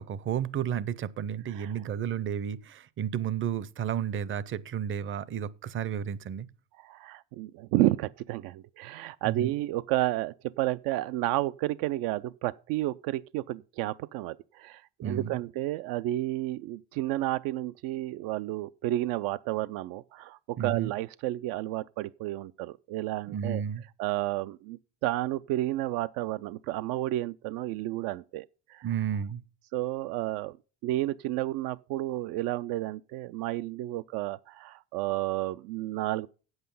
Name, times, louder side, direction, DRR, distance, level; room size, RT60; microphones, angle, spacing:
voice 1, 0.0-6.5 9.2-9.5 15.0-15.4 20.6-20.9 23.3-23.8 28.8-29.4, right 9 dB, 35° right, 0.6 m, -32 dB
voice 2, 1.5-1.8 6.8-23.6 24.0-28.9 29.7-30.6 30.8-36.3, right 16 dB, 75° right, 0.5 m, -31 dB
8.5 x 8.0 x 5.4 m
cardioid pair, 130°, 34 cm